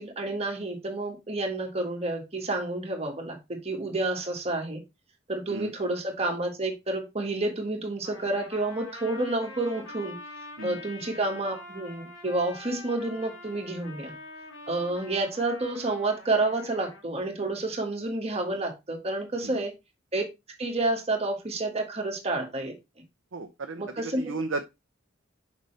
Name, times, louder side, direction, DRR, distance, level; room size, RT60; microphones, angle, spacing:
voice 1, 0.0-4.8 5.3-10.2 10.6-14.1 14.7-19.7 20.1-20.3 20.6-22.7 23.8-24.3, right 2 dB, 30° right, 1.7 m, -29 dB
Trumpet, 8.0-17.0, left 2 dB, 70° left, 2.3 m, -45 dB
voice 2, 23.3-23.8 24.2-24.6, right 3 dB, 85° right, 0.7 m, -34 dB
6.6 x 5.4 x 3.3 m
head